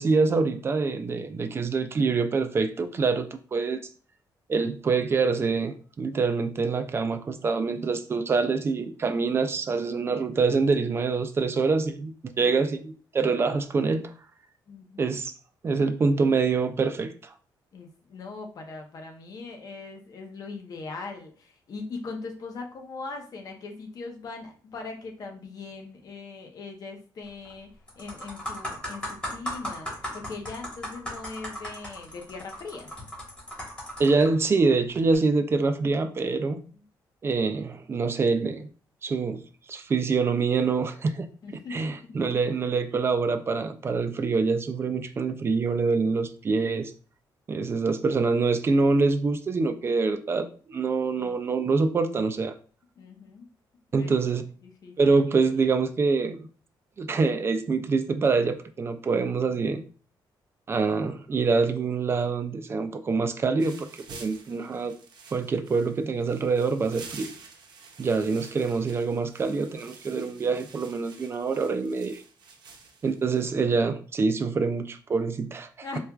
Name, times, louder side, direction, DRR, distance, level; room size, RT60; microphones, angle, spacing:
voice 1, 0.0-3.8 4.5-14.1 15.0-15.3 15.6-17.3 34.0-36.6 37.2-38.7 39.0-39.4 39.7-41.3 41.7-46.9 47.5-52.5 53.9-54.4 55.0-56.5 57.0-59.8 60.7-64.9 65.3-67.3 68.0-72.2 73.0-76.0, right 4 dB, 30° right, 9 dB, 0.3 m, -25 dB
voice 2, 14.7-15.2 17.7-27.7 28.0-32.9 36.7-36.8 41.4-42.1 53.0-53.5 54.0-54.1 54.6-54.9 75.8-76.0, left 4 dB, 50° left, 3 dB, 0.7 m, -40 dB
sound 1, 27.3-27.5 27.9-34.3 35.0-35.2, equal, 10° left, 1.5 m, -36 dB
sound 2, 63.6-73.5, right 4 dB, 65° right, 0.6 m, -49 dB
4.3 x 2.3 x 2.3 m, 0.40 s
cardioid pair, 130°, 8 cm